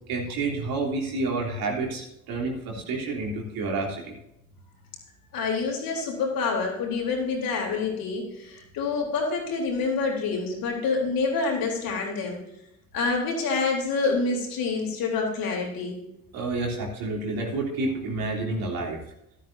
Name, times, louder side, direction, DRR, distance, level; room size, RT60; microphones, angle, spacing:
voice 1, 0.1-4.2 16.3-19.0, right 3 dB, 70° right, -1 dB, 3.5 m, -29 dB
voice 2, 5.3-12.4 12.9-16.0, left 4 dB, 65° left, -1 dB, 4.1 m, -27 dB
13.0 x 12.5 x 2.8 m, 0.83 s
hypercardioid pair, 55°, 37 cm